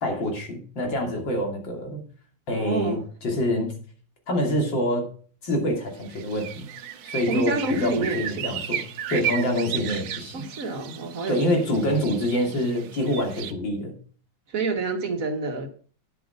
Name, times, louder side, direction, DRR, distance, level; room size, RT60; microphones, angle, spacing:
voice 1, 0.0-2.0 2.5-3.7 4.3-5.0 5.4-6.7 7.1-10.5 11.3-13.9, left 1 dB, 80° left, 3.4 m, -26 dB
voice 2, 2.5-3.0 7.3-8.6 10.3-11.6 14.5-15.7, right 3 dB, 50° right, 1.5 m, -28 dB
sound 1, 6.0-13.5, right 10 dB, 80° right, 1.5 m, -34 dB
10.0 x 7.7 x 5.2 m
omnidirectional pair, 2.0 m